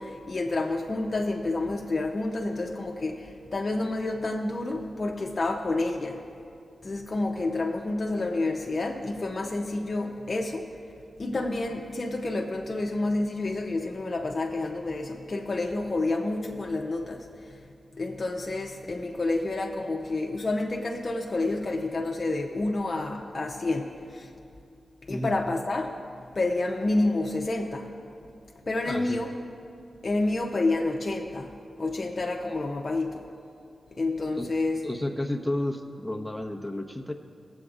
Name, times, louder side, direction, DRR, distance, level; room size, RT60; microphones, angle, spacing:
voice 1, 0.0-6.2 6.8-10.7 11.2-17.3 18.0-24.3 25.1-26.0 26.3-27.9 28.7-29.3 30.0-31.5 31.8-33.2 34.0-34.9, left 2 dB, 50° left, 1 dB, 0.7 m, -29 dB
voice 2, 28.8-29.2 34.4-34.5 34.8-37.1, left 1 dB, ahead, 3 dB, 1.1 m, -31 dB
17.5 x 7.8 x 2.5 m, 2.5 s
cardioid pair, 45°, 0 cm